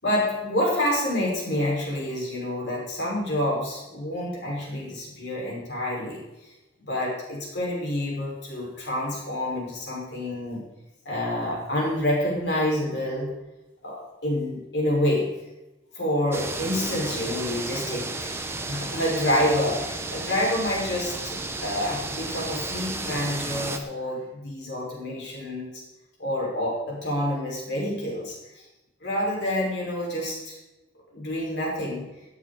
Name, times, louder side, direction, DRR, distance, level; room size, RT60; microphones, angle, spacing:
voice 1, 0.0-6.5 6.8-10.6 11.1-13.3 13.8-15.3 15.9-25.8 26.2-28.7 29.0-30.6 31.1-32.1, left 1 dB, 70° left, -4 dB, 5.5 m, -28 dB
sound 1, 16.3-23.8, right 2 dB, 15° right, 1.1 m, -33 dB
18.0 x 9.4 x 4.2 m, 1.0 s
head